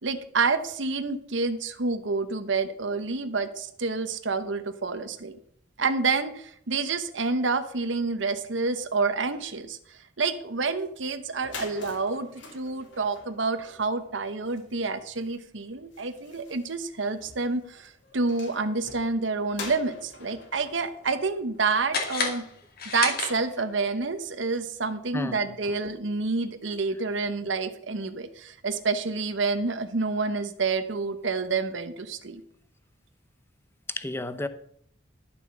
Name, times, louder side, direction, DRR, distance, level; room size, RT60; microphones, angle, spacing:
voice 1, 0.0-5.4 5.8-22.5 22.9-32.4, right 4 dB, 75° right, 10 dB, 1.0 m, -28 dB
sound 1, 11.3-22.1, left 4 dB, 70° left, 2.5 m, -46 dB
sound 2, 21.9-23.8, left 4 dB, 55° left, 2.3 m, -31 dB
voice 2, 25.1-25.8 33.9-34.5, left 2 dB, 15° left, 12 dB, 0.7 m, -33 dB
11.5 x 7.1 x 6.4 m, 0.67 s
head